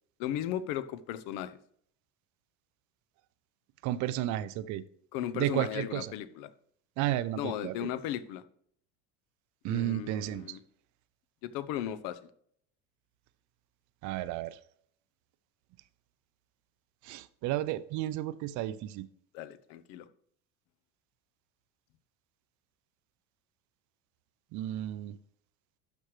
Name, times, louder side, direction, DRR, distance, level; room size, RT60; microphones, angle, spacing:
voice 1, 0.2-1.6 5.1-6.5 7.4-8.4 9.7-10.6 11.4-12.2 19.3-20.1, left 11 dB, 70° left, 14 dB, 0.8 m, -36 dB
voice 2, 3.8-4.8 5.3-6.1 7.0-7.9 9.6-10.6 14.0-14.6 17.0-19.1 24.5-25.2, right 13 dB, 55° right, 15 dB, 0.6 m, -33 dB
12.0 x 6.3 x 3.2 m, 0.65 s
cardioid pair, 140°, 36 cm